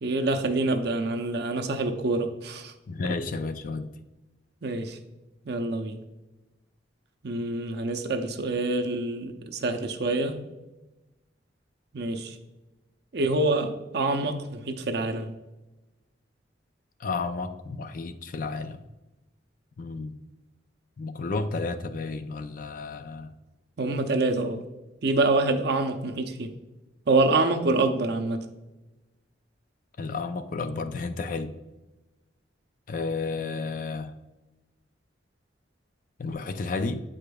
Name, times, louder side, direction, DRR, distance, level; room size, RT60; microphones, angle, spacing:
voice 1, 0.0-2.7 4.6-5.0 5.5-6.0 7.2-10.4 11.9-12.4 13.1-15.3 23.8-24.6 25.0-26.5 27.1-28.4, right 2 dB, 55° right, 6 dB, 0.6 m, -26 dB
voice 2, 2.9-3.9 17.0-18.8 19.8-20.2 21.0-23.3 30.0-31.5 32.9-34.1 36.2-37.0, left 3 dB, 45° left, 10 dB, 0.4 m, -32 dB
8.4 x 5.0 x 2.3 m, 1.1 s
head